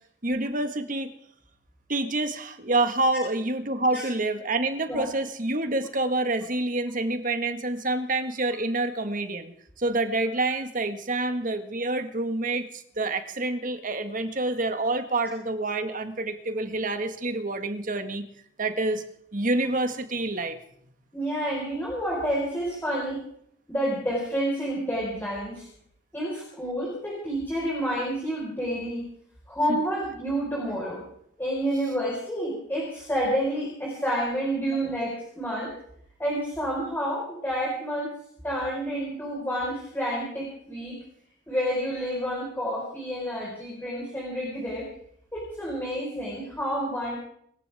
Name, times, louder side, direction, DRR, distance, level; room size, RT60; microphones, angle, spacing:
voice 1, 0.2-1.1 1.9-9.5 9.8-18.2 18.6-19.0 19.3-20.6 29.7-29.8, right 2 dB, 45° right, 8 dB, 1.8 m, -27 dB
voice 2, 21.1-23.2 23.7-25.7 26.1-29.0 29.5-31.0 31.4-35.7 36.2-38.1 38.4-41.0 41.5-44.9 45.3-47.2, equal, 10° left, -4 dB, 4.9 m, -29 dB
26.0 x 14.5 x 3.6 m, 0.69 s
head